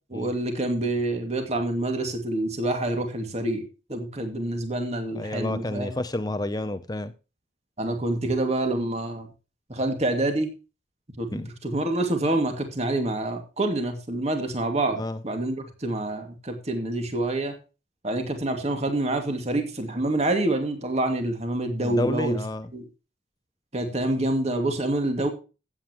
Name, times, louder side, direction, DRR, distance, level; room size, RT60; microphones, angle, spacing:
voice 1, 0.1-5.9 7.8-9.3 9.7-10.5 11.2-17.5 18.0-22.4 22.7-22.9 23.7-25.3, right 2 dB, 35° right, 2.4 m, -27 dB
voice 2, 5.1-7.1 11.3-11.5 14.9-15.2 21.8-22.7, left 1 dB, 20° left, 0.6 m, -30 dB
15.0 x 8.9 x 3.0 m
head